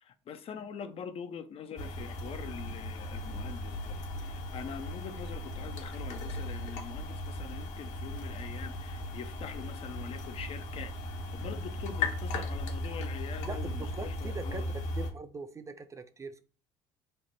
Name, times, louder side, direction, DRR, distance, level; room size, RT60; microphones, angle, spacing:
voice 1, 0.0-10.9 11.3-14.7, left 7 dB, 45° left, 0.4 m, -44 dB
sound 1, 1.8-15.1, left 1 dB, 60° left, 0.8 m, -37 dB
voice 2, 13.4-16.4, right 4 dB, 20° right, 0.4 m, -42 dB
3.2 x 2.1 x 4.2 m
hypercardioid pair, 60°, 14 cm